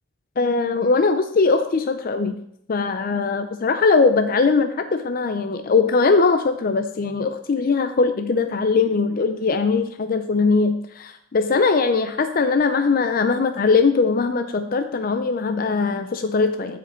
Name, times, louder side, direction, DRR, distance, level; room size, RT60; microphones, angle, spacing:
voice 1, 0.4-2.4 2.7-16.8, left 4 dB, 50° left, 8 dB, 0.5 m, -20 dB
14.5 x 5.1 x 4.3 m, 0.74 s
head